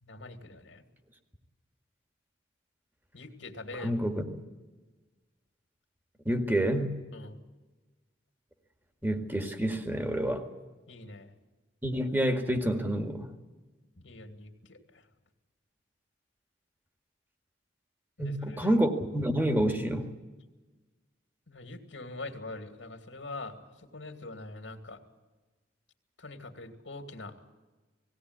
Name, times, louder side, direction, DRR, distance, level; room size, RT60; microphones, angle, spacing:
voice 1, 0.0-0.8 3.1-3.9 7.1-7.4 10.9-11.3 13.9-15.0 18.2-18.7 21.5-25.0 26.2-27.3, left 2 dB, 80° left, 6 dB, 2.5 m, -44 dB
voice 2, 3.8-4.2 6.3-7.0 9.0-10.5 11.8-13.3 18.2-20.1, right 1 dB, 10° right, 5 dB, 1.9 m, -28 dB
19.0 x 17.0 x 9.7 m, 1.3 s
head